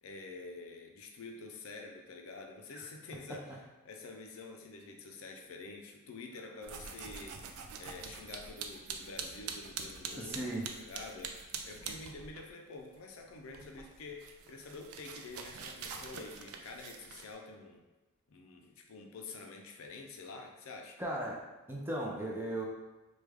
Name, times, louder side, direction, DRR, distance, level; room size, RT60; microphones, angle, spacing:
voice 1, 0.0-7.4 7.8-11.4 11.6-17.8 18.3-21.0, left 3 dB, 70° left, 3 dB, 0.4 m, -48 dB
sound 1, 6.6-12.5 12.8-17.3, right 6 dB, 85° right, 0.4 m, -45 dB
voice 2, 10.2-10.6 21.0-21.4 21.7-22.6, right 1 dB, 10° right, -3 dB, 0.5 m, -36 dB
3.2 x 2.3 x 3.3 m, 1.1 s
head